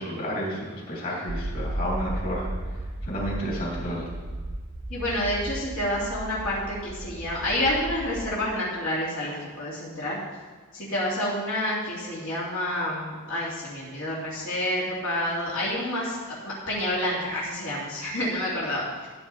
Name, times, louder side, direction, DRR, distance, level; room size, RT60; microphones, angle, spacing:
voice 1, 0.0-2.5 3.0-4.1, equal, 40° left, -4 dB, 3.3 m, -31 dB
sound 1, 1.3-8.5, right 1 dB, 30° right, 0.7 m, -35 dB
voice 2, 4.9-10.2 10.7-16.2 16.4-18.9, left 1 dB, 65° left, -7 dB, 2.9 m, -28 dB
14.0 x 8.6 x 4.2 m, 1.5 s
head